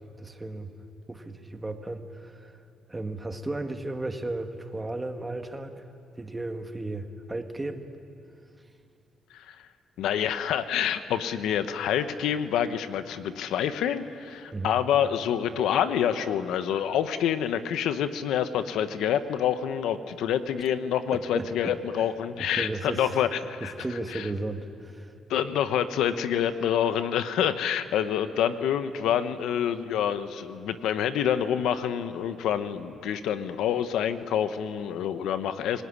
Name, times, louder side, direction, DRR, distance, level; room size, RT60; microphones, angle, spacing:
voice 1, 0.2-0.7 1.1-2.5 2.9-5.8 6.2-7.9 14.5-14.8 21.1-22.1 22.5-23.1 23.6-25.1, right 2 dB, 15° right, 6 dB, 1.8 m, -34 dB
voice 2, 10.0-23.7 24.1-24.3 25.3-35.8, left 9 dB, 85° left, 11 dB, 1.1 m, -27 dB
26.0 x 19.0 x 9.9 m, 2.6 s
cardioid pair, 90°, 0 cm